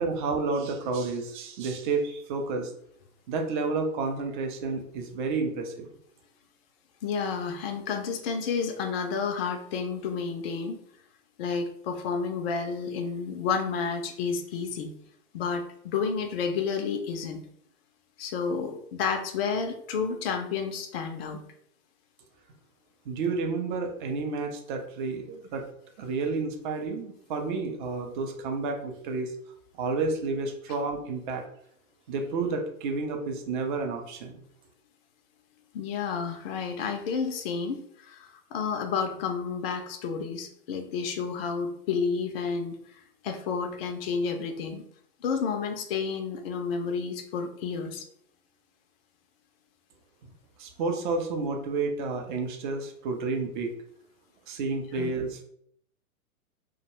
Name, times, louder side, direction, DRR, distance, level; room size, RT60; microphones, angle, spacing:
voice 1, 0.0-2.7 3.3-5.9 23.1-25.6 26.0-29.3 29.8-31.4 32.1-34.3 50.6-53.7 54.5-55.4, right 4 dB, 35° right, 3 dB, 0.5 m, -30 dB
voice 2, 7.0-10.8 11.4-14.9 15.3-17.4 18.2-21.4 35.7-44.8 45.2-48.1 54.9-55.1, left 5 dB, 45° left, 5 dB, 0.4 m, -31 dB
2.4 x 2.1 x 2.9 m, 0.68 s
hypercardioid pair, 115°, 44 cm